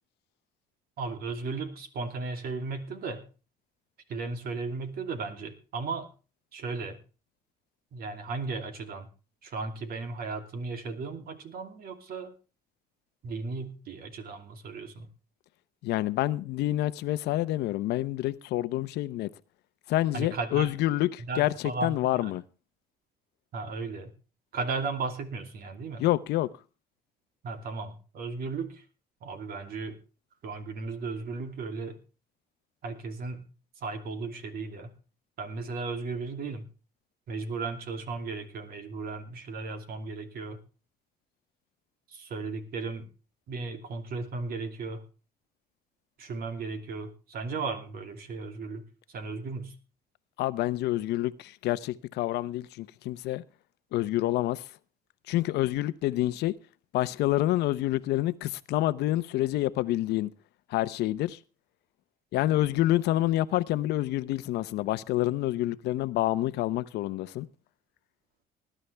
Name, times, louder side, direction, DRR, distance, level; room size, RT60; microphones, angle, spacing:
voice 1, 1.0-3.2 4.1-6.1 6.5-7.0 7.9-9.1 9.4-12.3 13.2-15.1 20.1-20.7 21.2-22.3 23.5-24.1 24.5-26.0 27.4-28.8 29.2-30.0 30.4-32.0 32.8-33.4 33.8-34.9 35.4-36.7 37.3-40.6 42.1-43.1 43.5-45.0 46.2-48.8 49.1-49.7, right 4 dB, 60° right, 2.7 m, -35 dB
voice 2, 15.8-19.3 19.9-22.4 26.0-26.5 50.4-53.4 53.9-54.6 55.3-56.5 56.9-60.3 60.7-61.4 62.3-67.5, left 15 dB, 80° left, 0.8 m, -27 dB
19.5 x 11.5 x 3.4 m
cardioid pair, 110°, 17 cm